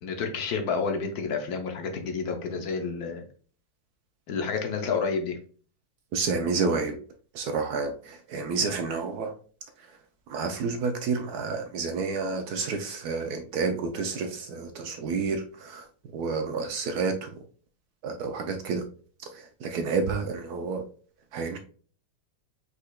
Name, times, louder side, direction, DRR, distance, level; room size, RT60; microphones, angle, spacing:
voice 1, 0.0-3.2 4.3-5.4, left 5 dB, 65° left, 4 dB, 1.1 m, -29 dB
voice 2, 6.1-7.0 7.3-9.3 10.3-15.9 16.1-17.3 18.0-18.8 19.3-20.8 21.3-21.6, right 4 dB, 70° right, 6 dB, 1.0 m, -29 dB
5.0 x 4.2 x 2.2 m, 0.43 s
omnidirectional pair, 2.0 m